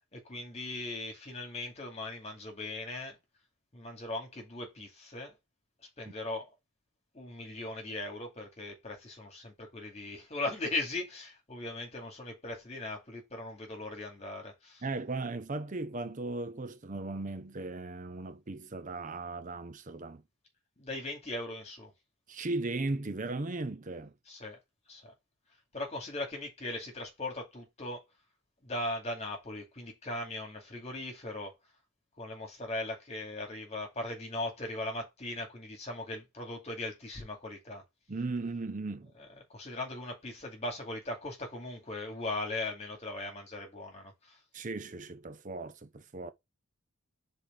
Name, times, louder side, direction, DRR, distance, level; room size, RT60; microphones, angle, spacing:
voice 1, 0.1-3.2 3.7-5.4 6.0-6.5 7.1-14.8 20.8-21.9 24.3-24.6 24.9-25.1 25.7-28.0 28.6-31.5 32.2-37.8 39.2-39.3 39.5-44.4, left 2 dB, 30° left, 2.4 m, -39 dB
voice 2, 14.8-20.2 22.3-24.1 38.1-39.1 44.5-46.3, right 2 dB, 35° right, 0.6 m, -37 dB
5.0 x 4.3 x 5.1 m
head